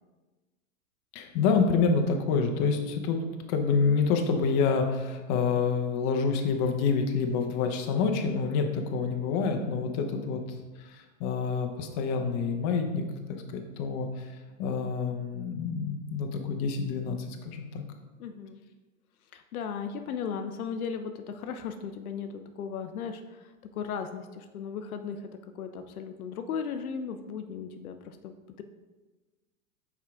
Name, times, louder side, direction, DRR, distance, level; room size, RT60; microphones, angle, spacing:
voice 1, 1.1-3.2 3.5-10.4 10.8-14.3 14.6-17.8, left 5 dB, 40° left, 4 dB, 0.9 m, -27 dB
voice 2, 18.2-18.6 19.3-25.3 25.5-28.6, left 6 dB, 85° left, 7 dB, 0.6 m, -36 dB
5.6 x 4.7 x 3.6 m, 1.2 s
hypercardioid pair, 115°, 42 cm